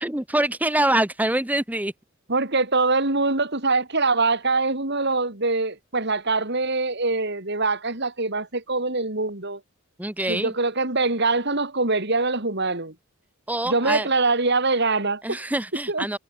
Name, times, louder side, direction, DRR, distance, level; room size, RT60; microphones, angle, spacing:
voice 1, 0.0-1.9 10.0-10.5 13.5-14.1 15.2-16.2, right 1 dB, 5° right, 1.0 m, -25 dB
voice 2, 2.3-9.6 10.3-12.9 13.6-15.4 15.9-16.1, right 3 dB, 50° right, 3.5 m, -23 dB
head